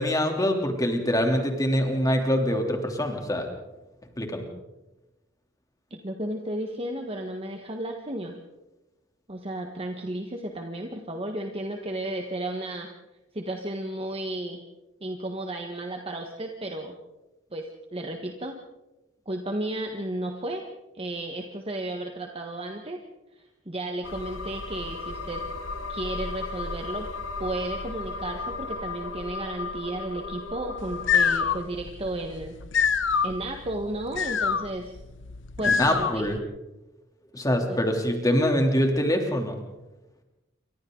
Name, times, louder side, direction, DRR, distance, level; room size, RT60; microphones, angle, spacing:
voice 1, 0.0-3.5 4.2-4.4 35.6-36.4 37.3-39.6, equal, 20° left, 3 dB, 3.2 m, -24 dB
voice 2, 5.9-8.3 9.3-12.9 13.3-14.6 15.0-17.0 17.5-18.6 19.2-20.6 20.9-23.0 23.6-25.4 25.9-27.1 27.4-32.6 33.2-34.9 35.6-36.5 37.7-37.8, right 1 dB, 30° right, 3 dB, 1.5 m, -33 dB
sound 1, 24.0-31.7, left 3 dB, 85° left, 2.4 m, -35 dB
sound 2, 30.8-36.4, left 6 dB, 65° left, 1.1 m, -26 dB
28.5 x 24.5 x 4.0 m, 1.0 s
head